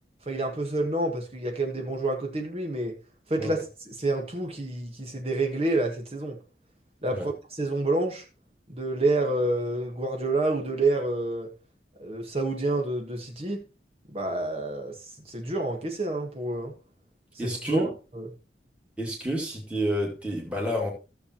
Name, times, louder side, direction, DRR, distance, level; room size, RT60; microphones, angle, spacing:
voice 1, 0.3-2.9 3.3-3.6 3.9-6.4 7.0-8.2 8.7-11.5 12.0-13.6 14.1-15.0 15.3-16.7 17.4-18.3, right 2 dB, 35° right, 1.4 m, -28 dB
voice 2, 17.4-17.9 19.0-20.9, equal, 5° right, 2.3 m, -29 dB
15.5 x 7.1 x 2.9 m
head